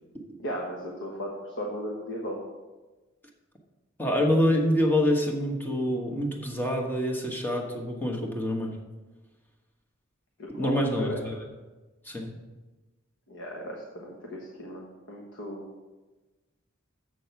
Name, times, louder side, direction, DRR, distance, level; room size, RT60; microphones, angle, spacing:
voice 1, 0.4-2.4 10.4-11.2 13.3-15.6, equal, 65° left, -1 dB, 1.3 m, -36 dB
voice 2, 4.0-8.7 10.6-11.4 12.0-12.3, equal, 10° left, 0 dB, 1.2 m, -26 dB
7.7 x 6.4 x 5.8 m, 1.2 s
head